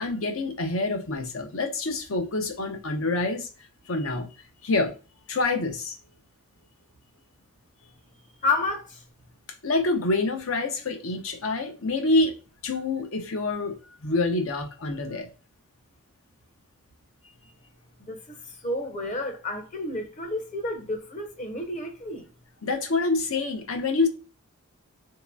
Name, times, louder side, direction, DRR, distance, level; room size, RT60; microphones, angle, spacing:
voice 1, 0.0-3.5 3.9-4.3 4.6-4.9 5.3-6.0 9.6-12.3 12.6-15.3 22.6-24.1, left 3 dB, 70° left, 0.8 m, -26 dB
voice 2, 8.4-9.0 18.0-22.3, left 2 dB, 35° left, 0.8 m, -30 dB
4.0 x 2.9 x 2.2 m
head